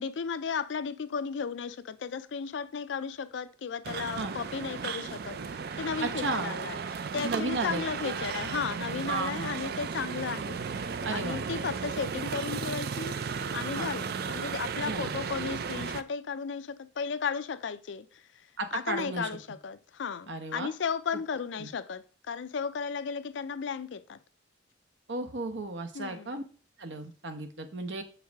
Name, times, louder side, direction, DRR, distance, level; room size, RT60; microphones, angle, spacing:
voice 1, 0.0-13.2 13.5-18.2 18.7-24.2 25.9-26.4, left 6 dB, 75° left, 0.4 m, -35 dB
sound 1, 3.8-16.0, right 6 dB, 55° right, 0.4 m, -35 dB
voice 2, 6.0-6.5 7.2-8.2 9.1-9.5 11.0-11.4 13.7-13.9 14.8-15.1 18.6-19.3 20.3-20.7 21.6-21.7 25.1-26.4 26.8-28.0, right 3 dB, 70° right, 0.9 m, -34 dB
7.3 x 4.7 x 3.5 m
head